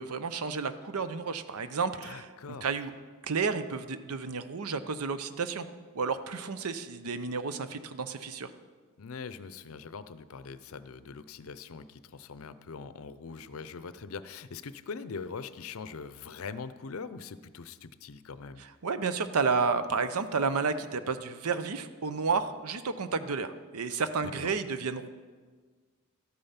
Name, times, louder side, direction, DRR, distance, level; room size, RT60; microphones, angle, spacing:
voice 1, 0.0-2.9 3.3-5.7 5.9-8.5 18.8-25.1, right 5 dB, 85° right, 11 dB, 0.7 m, -31 dB
voice 2, 2.0-2.7 9.0-18.6 24.4-24.5, left 5 dB, 70° left, 14 dB, 0.5 m, -42 dB
13.0 x 8.8 x 5.7 m, 1.5 s
head